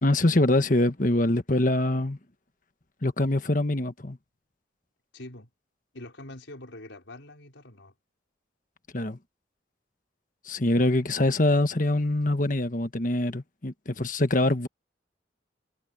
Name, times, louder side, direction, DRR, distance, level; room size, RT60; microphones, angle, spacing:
voice 1, 0.0-2.2 3.0-4.2 8.9-9.2 10.4-14.7, left 1 dB, 45° left, 1.4 m, -24 dB
voice 2, 5.1-5.5 5.9-7.9, left 1 dB, 85° left, 5.0 m, -44 dB
head